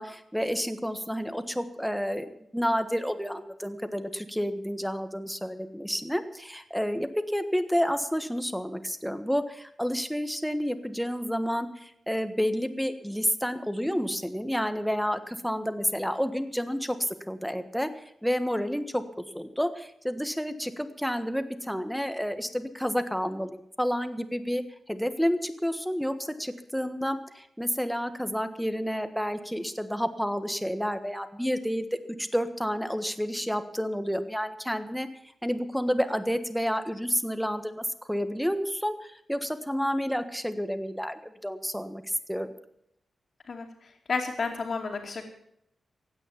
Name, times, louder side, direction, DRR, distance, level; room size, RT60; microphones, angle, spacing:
voice 1, 0.0-17.9 18.2-24.6 24.9-31.8 32.2-35.1 35.4-42.5, equal, ahead, 10 dB, 1.4 m, -30 dB
voice 2, 43.5-45.2, left 4 dB, 55° left, -3 dB, 2.6 m, -32 dB
16.0 x 9.4 x 7.3 m, 0.75 s
wide cardioid pair, 110°, 0 cm